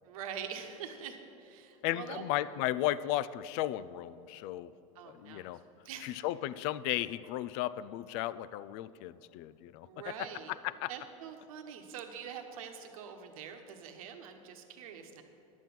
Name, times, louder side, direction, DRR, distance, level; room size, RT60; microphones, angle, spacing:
voice 1, 0.0-2.2 4.9-5.4 5.8-6.2 9.8-10.5 10.9-15.2, right 8 dB, 75° right, 5 dB, 1.1 m, -44 dB
voice 2, 1.8-4.7 5.1-5.6 6.0-10.3 10.6-10.9, left 14 dB, 55° left, 17 dB, 0.4 m, -35 dB
11.0 x 7.3 x 5.9 m, 2.9 s
supercardioid pair, 130°, 18 cm